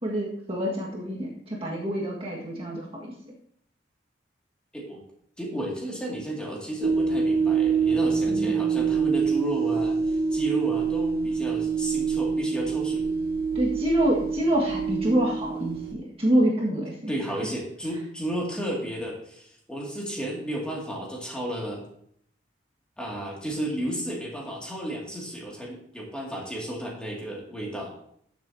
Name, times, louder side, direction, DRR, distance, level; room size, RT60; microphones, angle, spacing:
voice 1, 0.0-3.3 8.3-8.5 13.5-17.1, right 1 dB, 30° right, -3 dB, 1.7 m, -26 dB
voice 2, 5.4-13.1 17.1-21.8 23.0-27.9, right 1 dB, 5° left, -3 dB, 2.3 m, -33 dB
sound 1, 6.8-15.9, right 5 dB, 55° right, 0.7 m, -25 dB
14.0 x 7.4 x 2.8 m, 0.67 s
head